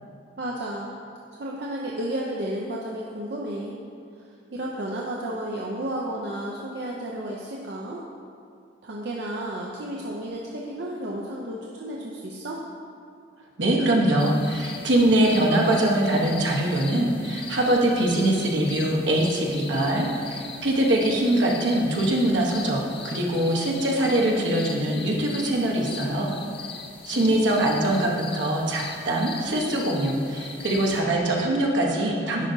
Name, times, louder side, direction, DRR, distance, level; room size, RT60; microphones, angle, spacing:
voice 1, 0.4-0.9 1.3-3.8 4.2-8.0 8.8-12.6 27.1-27.5, right 1 dB, 60° right, -3 dB, 0.5 m, -32 dB
voice 2, 13.6-26.3 27.1-32.5, right 1 dB, 75° right, -1 dB, 1.0 m, -23 dB
sound 1, 14.2-31.0, left 5 dB, 30° left, 0.4 m, -40 dB
10.5 x 5.0 x 2.7 m, 2.3 s
head